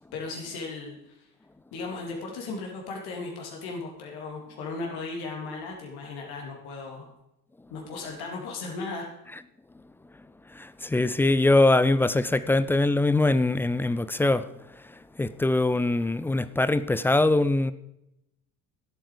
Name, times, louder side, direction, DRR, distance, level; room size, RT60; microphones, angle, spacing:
voice 1, 0.1-1.3 1.7-7.1 7.7-9.1, left 3 dB, 55° left, 3.1 m, -36 dB
voice 2, 10.5-14.5 15.2-17.7, left 2 dB, 5° left, 0.3 m, -22 dB
15.5 x 8.8 x 5.0 m
figure-of-eight pair, 55°, 46 cm